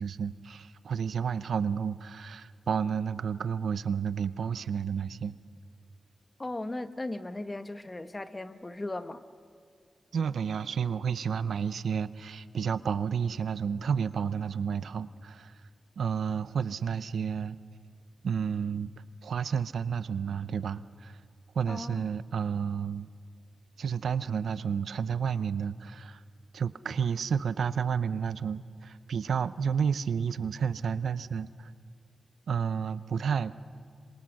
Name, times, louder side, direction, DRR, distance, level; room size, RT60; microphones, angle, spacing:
voice 1, 0.0-5.3 10.1-15.5 16.0-17.6 18.2-18.9 19.2-21.2 21.5-23.1 23.8-26.2 26.5-31.7 32.5-33.6, right 7 dB, 90° right, 15 dB, 0.6 m, -31 dB
voice 2, 6.4-9.2 21.7-22.0, left 2 dB, 25° left, 10 dB, 1.1 m, -37 dB
26.5 x 23.5 x 6.4 m, 2.3 s
wide cardioid pair, 95°, 0 cm